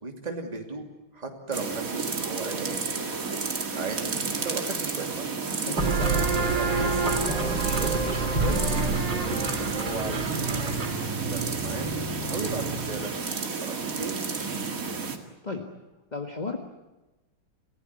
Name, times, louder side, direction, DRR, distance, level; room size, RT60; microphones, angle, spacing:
voice 1, 0.0-0.9 1.1-2.8 3.7-4.2 4.4-5.2 6.5-8.8 9.1-10.7 11.3-11.9 12.3-13.1 13.6-14.2, right 3 dB, 20° right, 2 dB, 2.8 m, -36 dB
sound 1, 1.5-15.2, right 4 dB, 40° right, 2.4 m, -31 dB
voice 2, 5.6-6.0 15.4-15.7 16.1-16.6, left 4 dB, 25° left, 5 dB, 1.5 m, -33 dB
sound 2, 5.8-13.1, right 3 dB, 60° right, 4.0 m, -28 dB
28.5 x 16.5 x 9.8 m, 1.1 s
omnidirectional pair, 2.2 m